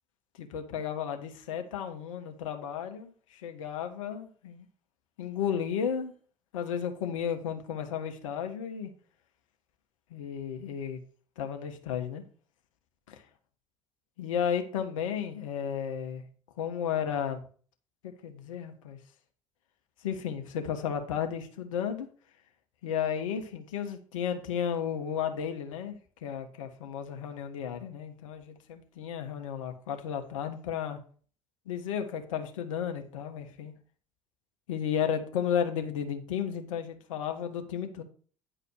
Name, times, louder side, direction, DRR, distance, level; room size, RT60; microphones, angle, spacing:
voice 1, 0.4-4.6 5.2-6.1 6.5-8.9 10.1-11.0 11.4-12.2 14.2-16.2 16.6-17.4 18.0-19.0 20.0-22.1 22.8-31.0 31.7-33.7 34.7-38.0, left 8 dB, 75° left, 6 dB, 1.4 m, -33 dB
10.0 x 4.9 x 6.5 m, 0.42 s
figure-of-eight pair, 60°, 17 cm